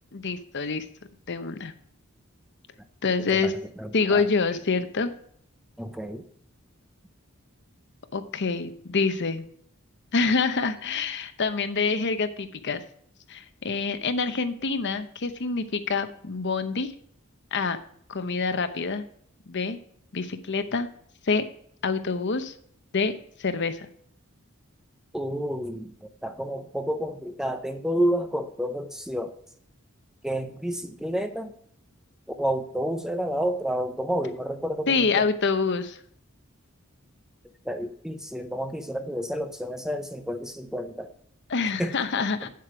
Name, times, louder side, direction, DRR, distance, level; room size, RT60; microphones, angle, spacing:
voice 1, 0.1-0.8 1.3-1.7 3.0-3.5 3.9-5.1 8.1-9.4 10.1-12.8 13.3-16.9 17.5-17.8 18.1-19.0 19.5-19.8 20.1-20.9 21.3-21.4 21.8-22.5 22.9-23.9 34.9-36.0 41.5-42.5, left 4 dB, 55° left, 10 dB, 0.8 m, -26 dB
voice 2, 3.2-4.3 5.8-6.3 25.1-29.3 30.2-31.5 32.4-35.3 37.6-41.1 41.8-42.0 42.4-42.5, equal, 5° right, 8 dB, 0.6 m, -30 dB
8.6 x 7.6 x 4.9 m, 0.63 s
head